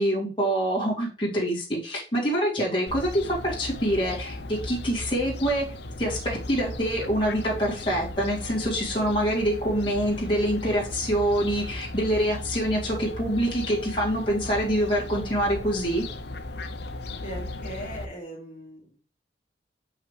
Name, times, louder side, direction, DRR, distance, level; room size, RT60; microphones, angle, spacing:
voice 1, 0.0-5.6 6.0-16.0, equal, 30° left, -5 dB, 2.2 m, -25 dB
Fowl, 2.9-18.1, left 2 dB, 65° left, 0.7 m, -36 dB
voice 2, 17.2-19.0, right 1 dB, 50° left, -4 dB, 2.0 m, -39 dB
6.6 x 5.6 x 3.2 m, 0.37 s
head